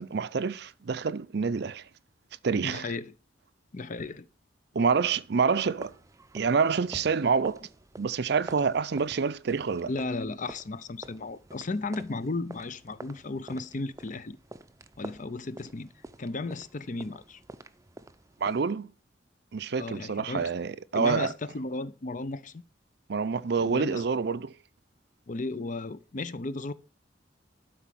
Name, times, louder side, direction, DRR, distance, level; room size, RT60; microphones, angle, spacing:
voice 1, 0.0-1.8 2.4-2.9 4.7-5.9 6.3-7.7 8.0-9.9 18.4-18.9 19.5-21.3 23.1-24.5, right 5 dB, 60° right, 0.5 m, -27 dB
voice 2, 2.6-3.1 3.7-4.3 9.8-14.4 15.0-15.9 16.2-17.4 19.8-20.5 20.9-22.6 23.6-24.0 25.3-26.7, left 3 dB, 45° left, 0.6 m, -35 dB
sound 1, 5.7-18.6, right 2 dB, 15° right, 0.6 m, -48 dB
12.0 x 5.0 x 7.5 m
head